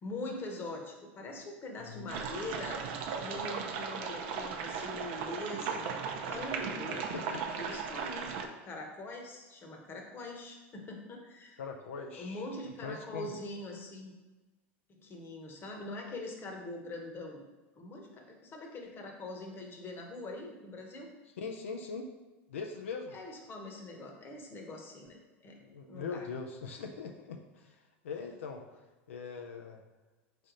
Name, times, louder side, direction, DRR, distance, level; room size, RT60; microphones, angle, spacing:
voice 1, 0.0-2.8 3.2-8.3 8.6-11.6 12.2-14.1 14.9-17.4 17.8-21.1 23.1-25.6 25.9-26.3, left 2 dB, 35° left, 2 dB, 1.0 m, -43 dB
voice 2, 1.9-2.2 7.1-7.4 11.6-12.4 12.8-13.4 21.4-22.1 22.5-23.2 25.6-28.8 29.1-29.8, left 5 dB, 90° left, 3 dB, 0.5 m, -41 dB
sound 1, 2.1-8.5, right 6 dB, 65° right, 0.6 m, -37 dB
4.1 x 3.3 x 3.8 m, 1.2 s
hypercardioid pair, 100°, 7 cm